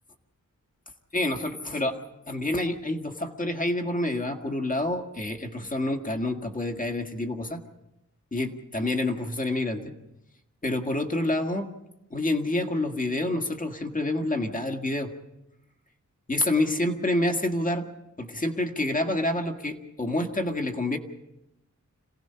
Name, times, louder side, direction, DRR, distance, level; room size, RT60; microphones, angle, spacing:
voice 1, 1.1-1.9 2.3-7.6 8.3-9.9 10.6-11.7 12.1-15.1 16.3-17.9 18.2-21.0, left 1 dB, 25° left, 4 dB, 1.8 m, -28 dB
27.0 x 17.5 x 5.7 m, 0.90 s
wide cardioid pair, 135°, 30 cm